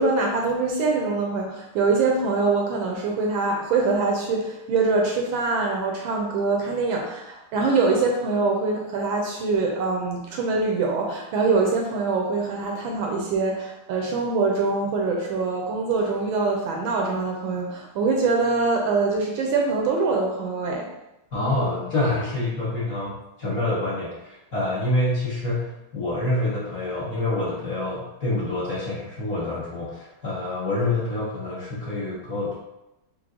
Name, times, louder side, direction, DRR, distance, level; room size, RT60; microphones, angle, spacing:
voice 1, 0.0-20.9, right 3 dB, 75° right, 0 dB, 1.2 m, -24 dB
voice 2, 21.3-32.5, left 2 dB, 55° left, -8 dB, 1.1 m, -27 dB
4.6 x 2.0 x 3.6 m, 0.91 s
omnidirectional pair, 2.4 m